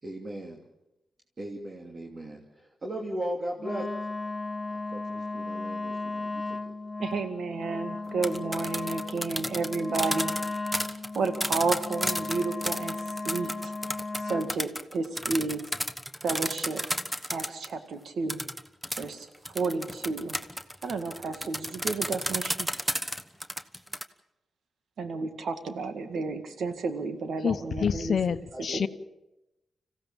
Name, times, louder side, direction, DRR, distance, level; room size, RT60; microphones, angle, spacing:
voice 1, 0.0-0.6 1.4-3.9 4.7-6.7 28.5-28.9, right 1 dB, 40° right, 0 dB, 2.8 m, -37 dB
Wind instrument woodwind instrument, 3.6-14.6, left 3 dB, 25° left, 0.9 m, -35 dB
voice 2, 7.0-10.3 11.1-13.0 13.2-13.7 14.2-15.6 16.2-16.8 17.3-18.4 19.0-20.4 20.8-22.7 25.0-28.2 28.7-28.9, right 4 dB, 75° right, 9 dB, 2.0 m, -31 dB
sound 1, 8.1-17.7 18.3-24.0, equal, 5° right, 1.2 m, -32 dB
voice 3, 27.4-28.9, left 6 dB, 65° left, 12 dB, 0.9 m, -27 dB
26.0 x 16.0 x 7.3 m, 0.92 s
cardioid pair, 60°, 0 cm